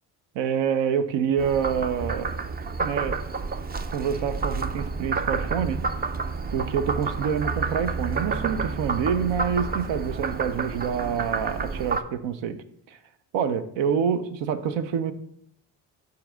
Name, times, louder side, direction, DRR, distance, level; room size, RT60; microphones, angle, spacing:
voice 1, 0.3-2.4 2.8-3.2 3.9-5.8 6.5-12.6 12.9-13.0 13.3-15.1, right 7 dB, 75° right, 10 dB, 0.7 m, -27 dB
Frog, 1.4-12.0, right 4 dB, 25° right, 0.4 m, -29 dB
5.8 x 3.9 x 6.1 m, 0.71 s
cardioid pair, 75°, 44 cm